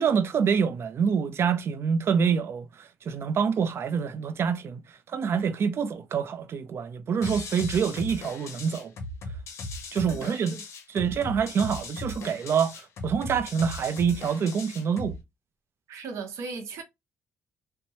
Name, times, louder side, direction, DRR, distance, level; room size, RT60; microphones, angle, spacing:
voice 1, 0.0-4.8 5.1-8.9 9.9-10.6 10.9-15.1, right 6 dB, 55° right, 0.5 m, -26 dB
sound 1, 7.2-15.2, left 2 dB, 70° left, 0.6 m, -38 dB
voice 2, 10.0-10.6 15.9-16.8, right 4 dB, 80° right, 0.8 m, -37 dB
2.7 x 2.1 x 2.9 m
cardioid pair, 90°, 5 cm